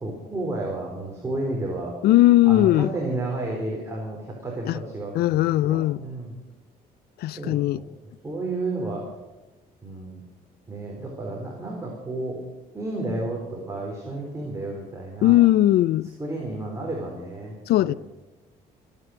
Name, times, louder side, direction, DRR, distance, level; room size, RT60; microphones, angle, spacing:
voice 1, 0.0-1.9 2.5-5.3 5.6-6.3 7.4-7.8 8.2-9.0 9.8-10.2 10.7-12.4 12.7-15.4 16.2-18.0, right 2 dB, 15° right, 4.2 m, -31 dB
voice 2, 2.0-2.9 4.7-4.8 5.1-6.0 7.2-7.8 15.2-16.1 17.7-17.9, left 15 dB, 70° left, 0.5 m, -19 dB
22.5 x 9.3 x 6.5 m
cardioid pair, 110°, 17 cm